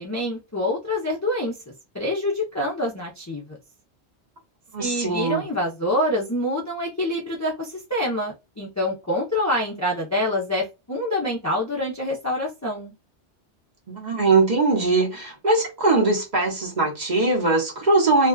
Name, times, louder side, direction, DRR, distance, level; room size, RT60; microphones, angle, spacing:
voice 1, 0.0-1.5 1.9-3.6 4.8-12.9, left 1 dB, 25° left, 0.4 m, -26 dB
voice 2, 4.7-5.5 13.9-18.3, right 3 dB, 45° right, 0.9 m, -21 dB
2.5 x 2.3 x 2.3 m
omnidirectional pair, 1.2 m